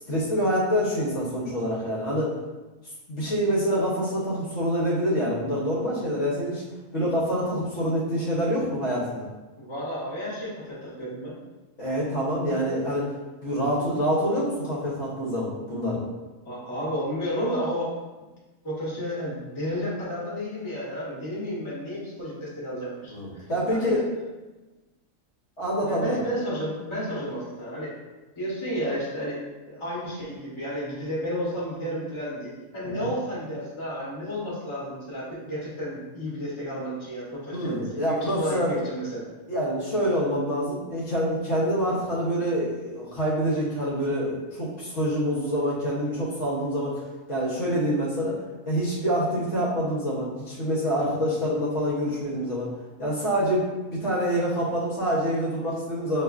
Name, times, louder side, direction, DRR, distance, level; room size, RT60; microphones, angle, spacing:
voice 1, 0.1-2.3 3.1-6.6 6.9-9.3 11.8-13.1 13.4-16.0 23.1-24.0 25.6-26.2 32.8-33.1 37.5-38.8 39.5-48.4 48.7-52.7 53.0-56.2, equal, 60° left, -6 dB, 1.2 m, -26 dB
voice 2, 9.6-11.4 16.4-17.9 18.6-23.4 23.7-24.0 25.9-27.9 28.4-39.2, equal, 20° left, -7 dB, 1.1 m, -32 dB
5.8 x 2.5 x 2.4 m, 1.2 s
omnidirectional pair, 1.5 m